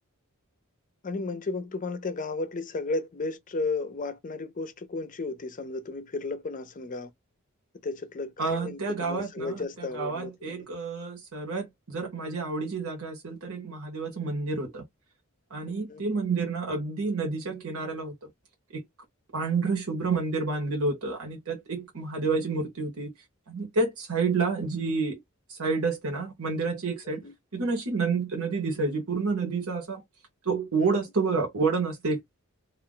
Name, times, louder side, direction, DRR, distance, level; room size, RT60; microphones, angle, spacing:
voice 1, 1.0-7.1 7.8-10.7 15.9-16.0 27.0-27.3, left 3 dB, 40° left, 0.5 m, -34 dB
voice 2, 8.4-14.8 15.5-18.1 18.7-18.8 19.3-23.1 23.5-25.2 25.5-27.2 27.5-30.0 30.4-32.2, right 4 dB, 80° right, 1.0 m, -29 dB
2.4 x 2.2 x 3.7 m
head